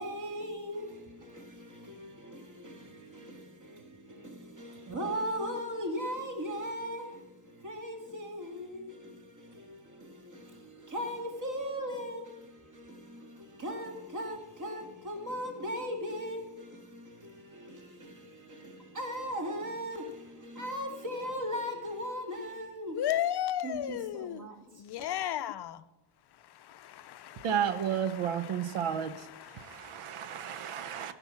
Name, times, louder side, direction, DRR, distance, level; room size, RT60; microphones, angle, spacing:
voice 1, 0.0-23.0 23.6-25.1, equal, 35° right, 1.9 m, -39 dB
voice 2, 22.9-25.8 26.8-30.2, left 11 dB, 55° left, 0.5 m, -36 dB
voice 3, 27.4-31.1, right 8 dB, 90° right, 0.9 m, -32 dB
14.5 x 5.4 x 7.2 m
wide cardioid pair, 165°, 49 cm